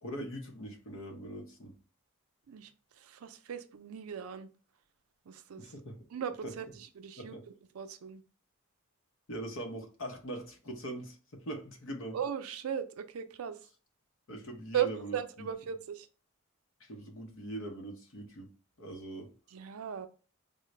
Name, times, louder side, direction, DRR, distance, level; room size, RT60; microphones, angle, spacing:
voice 1, 0.0-1.7 5.6-6.0 6.4-6.5 7.2-7.4 9.3-12.2 14.3-15.5 16.8-18.5 18.8-19.3, right 1 dB, 65° left, 0.7 m, -42 dB
voice 2, 3.0-4.5 5.3-5.7 6.1-7.4 7.7-8.2 12.1-13.6 14.7-16.1 19.5-20.1, right 9 dB, 85° right, 0.4 m, -37 dB
3.8 x 2.1 x 3.2 m
head